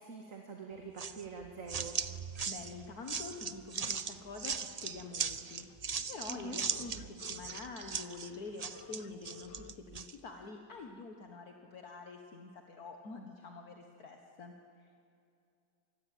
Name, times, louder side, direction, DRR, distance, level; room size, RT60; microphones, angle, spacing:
voice 1, 0.0-2.0 6.3-6.6, right 3 dB, 45° right, 3 dB, 2.2 m, -45 dB
sound 1, 1.0-10.1, right 5 dB, 75° right, 0.3 m, -39 dB
voice 2, 2.5-5.7 6.0-15.1, left 3 dB, 55° left, 4 dB, 2.0 m, -47 dB
sound 2, 5.6-9.8, left 8 dB, 80° left, 1.5 m, -55 dB
27.0 x 20.5 x 9.4 m, 2.6 s
omnidirectional pair, 1.9 m